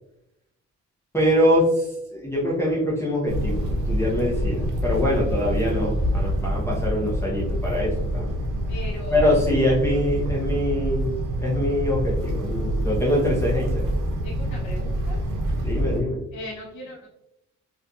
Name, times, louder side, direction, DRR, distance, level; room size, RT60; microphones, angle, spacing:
voice 1, 1.1-8.3 9.1-11.1 11.4-13.8 15.6-16.2, left 1 dB, 10° left, -7 dB, 0.6 m, -24 dB
sound 1, 3.3-16.0, equal, 90° right, 0.7 m, -26 dB
voice 2, 8.7-9.3 14.2-15.2 15.6-15.7 16.3-17.1, left 1 dB, 70° left, -4 dB, 0.7 m, -37 dB
2.7 x 2.5 x 2.2 m, 0.86 s
cardioid pair, 90°, 30 cm